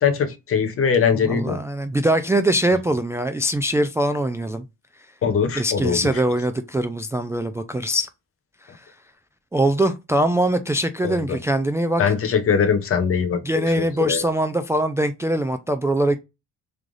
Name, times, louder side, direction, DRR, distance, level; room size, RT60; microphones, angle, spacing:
voice 1, 0.0-1.6 5.2-6.0 11.0-11.4 12.0-14.2, left 6 dB, 50° left, 0.8 m, -21 dB
voice 2, 1.2-4.6 5.5-8.1 9.5-12.1 13.4-16.2, right 1 dB, 10° right, 0.3 m, -22 dB
3.2 x 2.4 x 3.8 m
cardioid pair, 90°, 30 cm